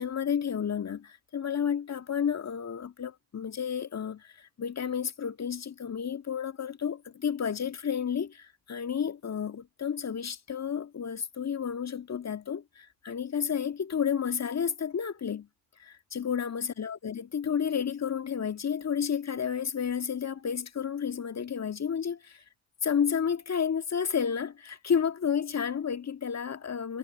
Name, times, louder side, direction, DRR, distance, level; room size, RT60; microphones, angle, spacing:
voice 1, 0.0-15.5 15.8-22.4 22.8-27.0, left 7 dB, 30° left, 1.9 m, -31 dB
figure-of-eight pair, 50°, 49 cm